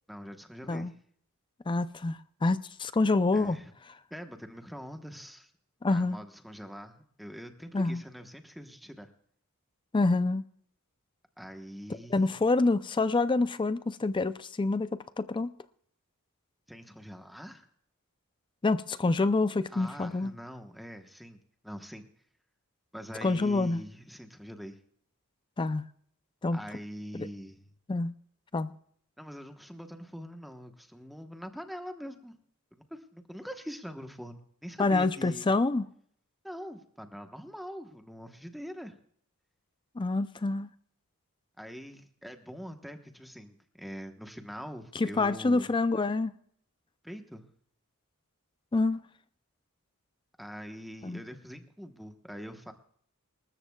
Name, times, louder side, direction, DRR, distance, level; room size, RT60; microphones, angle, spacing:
voice 1, 0.1-0.9 3.3-3.7 4.1-5.5 5.9-9.1 11.4-12.4 16.7-17.7 19.7-21.4 21.6-22.0 22.9-24.8 26.5-27.7 29.2-32.4 32.7-35.5 36.4-38.9 41.6-45.7 47.0-47.5 50.4-52.7, equal, ahead, 1.1 m, -43 dB
voice 2, 1.7-3.6 5.8-6.2 7.7-8.0 9.9-10.4 12.1-15.5 18.6-20.3 23.2-23.8 25.6-25.8 26.4-26.6 27.1-27.3 27.9-28.1 28.5-28.7 34.8-35.9 40.0-40.7 44.9-46.3 48.7-49.0 51.0-51.2, left 3 dB, 20° left, 0.4 m, -27 dB
26.5 x 13.5 x 2.3 m
head